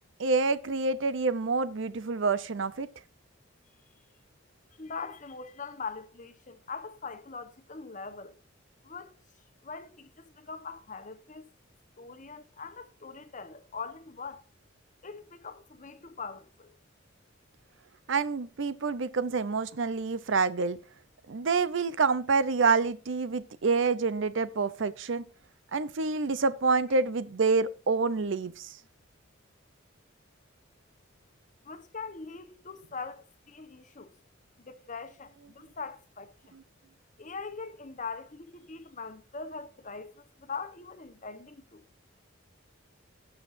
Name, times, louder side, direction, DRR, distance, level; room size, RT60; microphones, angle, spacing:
voice 1, 0.2-2.9 18.1-20.8 21.3-25.2 25.7-28.7, right 4 dB, 65° right, 0.6 m, -27 dB
voice 2, 4.8-8.4 8.8-9.1 9.6-11.4 12.0-14.4 15.0-16.7 31.6-34.1 34.6-36.3 37.2-41.8, left 4 dB, 40° left, 1.1 m, -42 dB
18.5 x 6.4 x 2.6 m
head